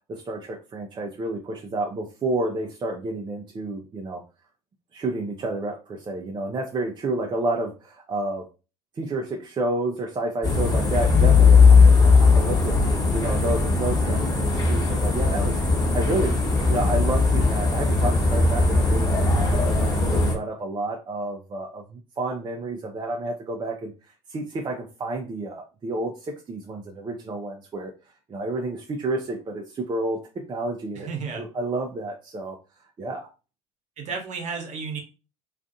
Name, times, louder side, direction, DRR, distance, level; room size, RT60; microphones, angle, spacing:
voice 1, 0.1-4.2 4.9-8.4 9.0-16.3 16.7-27.9 28.3-30.2 30.5-32.6 33.0-33.3, right 2 dB, 30° right, 2 dB, 0.5 m, -30 dB
sound 1, 10.4-20.3, left 4 dB, 20° left, 1.1 m, -18 dB
voice 2, 31.1-31.4 34.0-35.0, right 5 dB, 50° right, 3 dB, 0.9 m, -32 dB
2.5 x 2.4 x 2.5 m, 0.32 s
hypercardioid pair, 70°, 16 cm